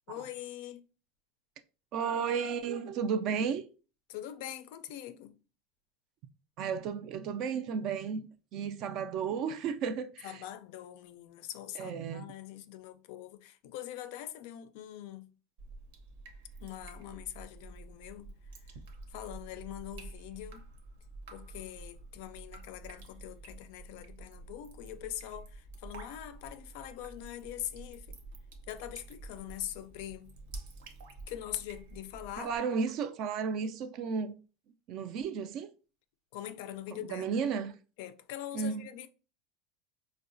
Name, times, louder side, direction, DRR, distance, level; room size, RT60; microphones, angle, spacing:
voice 1, 0.1-0.8 4.1-5.4 10.2-15.3 16.6-18.3 18.6-18.7 19.1-20.6 21.3-28.2 28.7-30.3 31.3-32.5 36.3-37.3 38.0-39.1, left 12 dB, 60° left, 0.3 m, -43 dB
voice 2, 1.9-3.6 6.6-8.2 8.5-10.4 11.8-12.3 32.4-34.3 34.9-35.7 37.1-37.8 38.5-38.8, right 6 dB, 40° right, 0.3 m, -33 dB
Drip, 15.6-32.6, right 2 dB, 75° right, 0.8 m, -49 dB
4.5 x 2.1 x 2.6 m
supercardioid pair, 175°, 0 cm